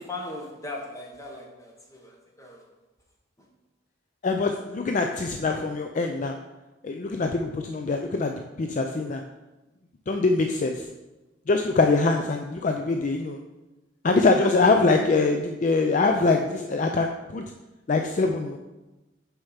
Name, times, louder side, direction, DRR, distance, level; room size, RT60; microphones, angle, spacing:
voice 1, 0.0-2.8 3.4-3.5, left 2 dB, 15° left, 0 dB, 1.1 m, -39 dB
voice 2, 4.2-6.3 6.8-9.2 10.1-10.9 11.5-13.4 14.0-17.4 17.9-18.6, left 3 dB, 40° left, 4 dB, 0.4 m, -23 dB
6.5 x 4.7 x 5.6 m, 1.1 s
head